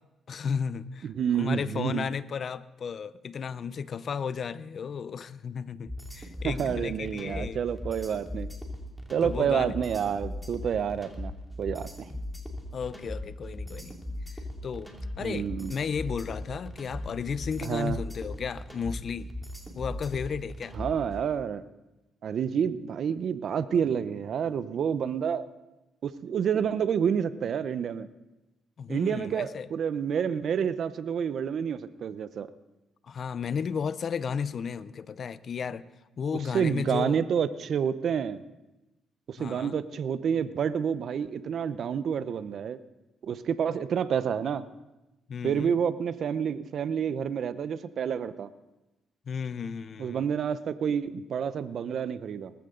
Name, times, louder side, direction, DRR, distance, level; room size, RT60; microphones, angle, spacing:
voice 1, 0.3-1.1 1.3-7.6 9.2-9.8 12.7-14.0 14.3-14.9 15.2-19.3 19.7-20.7 28.8-29.7 33.0-35.9 36.2-37.2 39.4-39.8 45.3-45.8 49.3-50.3, left 6 dB, 50° left, 0.6 m, -34 dB
voice 2, 1.0-2.1 6.4-8.5 9.1-11.3 11.6-11.9 15.2-15.7 17.6-18.0 20.7-21.6 22.2-25.5 26.0-28.1 28.9-32.5 36.5-38.4 39.3-42.8 43.2-44.6 45.4-48.5 50.0-52.5, right 7 dB, 60° right, 0.7 m, -29 dB
sound 1, 5.9-21.1, left 1 dB, ahead, 2.6 m, -38 dB
19.5 x 14.5 x 3.8 m
cardioid pair, 90°, 0 cm